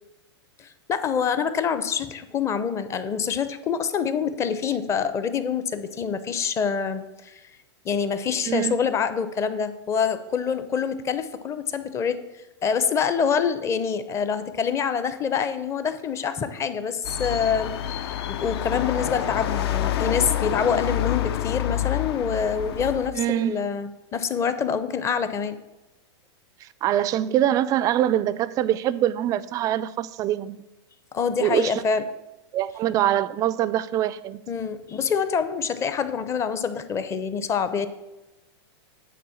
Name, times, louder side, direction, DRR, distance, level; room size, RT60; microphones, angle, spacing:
voice 1, 0.6-7.4 7.8-12.2 12.6-25.6 31.1-32.0 34.5-37.9, left 6 dB, 20° left, 11 dB, 0.6 m, -26 dB
voice 2, 8.5-8.9 23.1-23.7 26.6-30.6 31.4-31.8 32.5-34.4, right 12 dB, 25° right, 17 dB, 0.3 m, -24 dB
sound 1, 17.0-23.1, left 11 dB, 65° left, 0.6 m, -27 dB
9.3 x 4.2 x 7.0 m, 1.0 s
hypercardioid pair, 135°, 14 cm